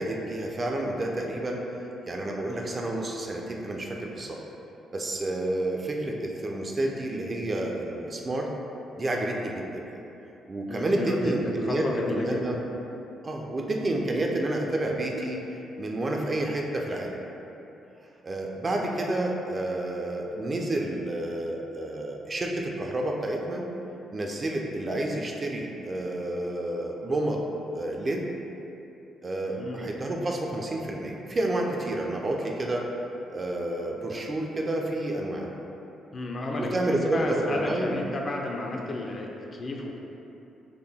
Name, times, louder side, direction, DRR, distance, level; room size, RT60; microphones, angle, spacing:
voice 1, 0.0-1.6 2.1-4.4 4.9-8.5 9.0-9.9 10.5-12.5 13.2-15.4 15.8-17.2 18.2-23.6 24.1-27.4 27.7-28.2 29.2-32.9 33.3-35.5 36.6-37.9, right 1 dB, 30° right, 0 dB, 0.4 m, -29 dB
voice 2, 10.7-12.6 29.4-29.8 36.1-40.0, left 2 dB, 40° left, 0 dB, 0.4 m, -32 dB
3.6 x 2.1 x 3.4 m, 2.8 s
cardioid pair, 90°, 0 cm